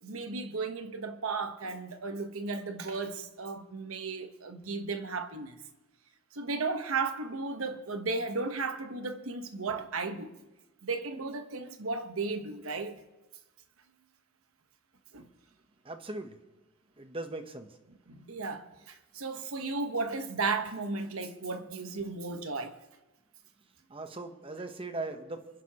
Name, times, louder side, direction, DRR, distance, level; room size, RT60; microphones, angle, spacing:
voice 1, 0.0-5.6 6.3-10.4 10.8-13.0 15.1-15.3 17.9-22.7, right 4 dB, 85° right, 1.1 m, -35 dB
voice 2, 15.8-16.4 17.0-17.7 23.9-25.5, right 2 dB, 25° right, 0.9 m, -39 dB
26.0 x 11.0 x 2.9 m
head